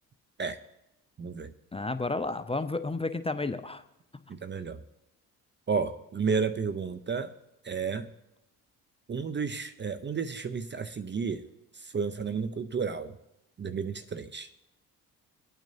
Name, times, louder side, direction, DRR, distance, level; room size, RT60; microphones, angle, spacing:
voice 1, 1.2-1.5 4.3-4.8 5.7-7.3 7.6-8.1 9.1-11.5 11.7-13.2 13.6-14.5, right 5 dB, 25° right, 11 dB, 0.6 m, -32 dB
voice 2, 1.7-3.8, left 3 dB, 15° left, 10 dB, 0.7 m, -31 dB
22.5 x 9.0 x 2.8 m, 0.89 s
hypercardioid pair, 50°, 43 cm